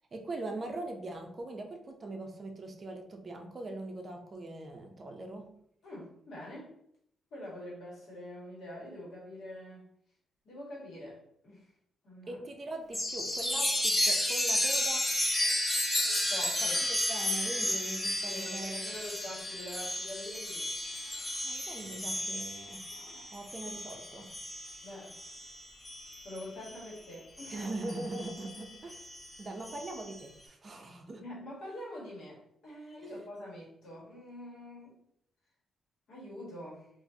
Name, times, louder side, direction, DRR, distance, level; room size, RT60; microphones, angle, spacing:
voice 1, 0.1-5.5 12.3-15.0 16.9-18.9 21.4-22.8 23.3-24.3 27.5-29.1 29.4-31.2, right 2 dB, 35° right, 3 dB, 0.6 m, -41 dB
voice 2, 5.8-6.7 7.3-9.9 10.4-11.7 12.0-12.4 16.3-16.8 18.2-20.7 24.8-25.2 26.2-27.6 31.2-35.0 36.1-36.9, left 1 dB, 70° left, -5 dB, 1.4 m, -45 dB
Chime, 12.9-26.9 27.4-30.2, left 1 dB, 10° left, 0.6 m, -33 dB
3.6 x 2.6 x 2.7 m, 0.70 s
cardioid pair, 130°, 0 cm